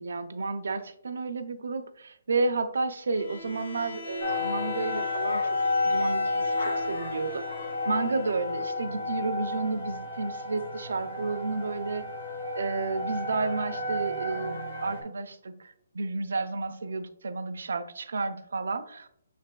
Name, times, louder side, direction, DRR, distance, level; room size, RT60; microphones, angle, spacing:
voice 1, 0.0-5.4 5.8-7.4 7.8-12.0 12.5-19.1, right 3 dB, 75° right, 9 dB, 0.5 m, -31 dB
Bowed string instrument, 3.1-8.7, left 4 dB, 50° left, 0.6 m, -42 dB
sound 1, 4.2-15.0, left 2 dB, 70° left, 1.4 m, -31 dB
6.5 x 3.3 x 2.2 m, 0.69 s
hypercardioid pair, 175°, 0 cm